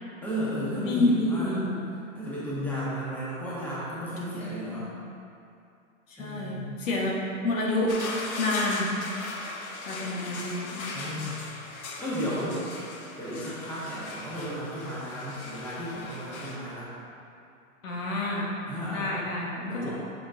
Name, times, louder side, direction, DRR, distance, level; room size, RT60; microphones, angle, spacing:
voice 1, 0.2-1.5 2.1-4.9 6.2-6.7 10.9-11.5 12.0-12.6 13.2-16.9 18.6-19.2 19.7-20.0, equal, 5° left, -9 dB, 1.2 m, -34 dB
voice 2, 0.8-1.9 4.2-4.9 6.1-7.2 7.4-7.9 8.4-8.9 9.9-10.9 17.8-18.5 18.9-19.8, left 2 dB, 70° left, -3 dB, 1.4 m, -29 dB
sound 1, 7.9-16.6, left 3 dB, 90° left, 1.1 m, -39 dB
6.7 x 6.4 x 2.7 m, 2.5 s
hypercardioid pair, 140°, 41 cm